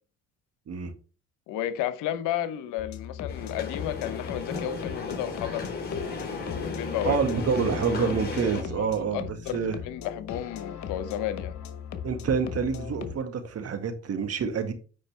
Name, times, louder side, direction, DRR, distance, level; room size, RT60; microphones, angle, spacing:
voice 1, 1.5-5.6 6.6-7.2 8.8-9.6 9.8-11.5, left 11 dB, 80° left, 1.0 m, -32 dB
sound 1, 2.8-13.2, left 8 dB, 60° left, 1.4 m, -39 dB
sound 2, 3.3-8.6, left 4 dB, 30° left, 4.4 m, -34 dB
voice 2, 7.1-9.3 9.5-9.8 12.0-14.7, right 6 dB, 50° right, 1.8 m, -27 dB
8.8 x 5.0 x 3.3 m
supercardioid pair, 65°, 31 cm